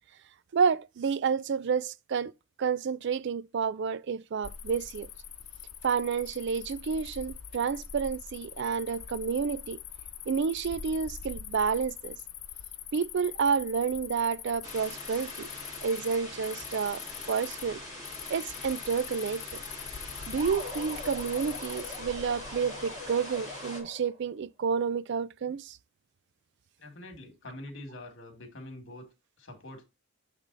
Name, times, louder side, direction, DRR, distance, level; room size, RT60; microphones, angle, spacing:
voice 1, 0.5-2.3 2.6-5.1 5.8-9.8 10.3-12.2 12.9-15.5 15.8-17.8 18.3-19.6 20.3-25.8, right 6 dB, 55° right, 0.4 m, -30 dB
Cricket, 4.4-23.4, left 8 dB, 85° left, 0.8 m, -44 dB
sound 1, 14.6-23.8, left 1 dB, 15° right, 2.1 m, -43 dB
sound 2, 20.4-24.3, left 1 dB, 35° right, 2.1 m, -43 dB
voice 2, 26.8-29.8, left 1 dB, 55° left, 2.0 m, -45 dB
8.2 x 3.6 x 3.9 m
head